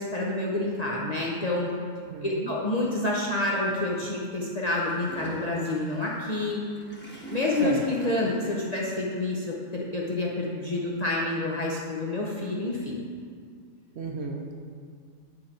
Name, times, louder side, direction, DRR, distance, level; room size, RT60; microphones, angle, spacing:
voice 1, 0.0-1.7 2.2-6.6 7.3-13.0, left 2 dB, 40° left, -4 dB, 0.6 m, -28 dB
voice 2, 2.1-2.5 7.6-7.8 14.0-14.5, right 4 dB, 60° right, 1 dB, 0.8 m, -34 dB
Gurgling / Toilet flush, 4.8-8.6, right 1 dB, 10° left, 1.0 m, -42 dB
9.9 x 3.9 x 4.3 m, 2.1 s
omnidirectional pair, 1.5 m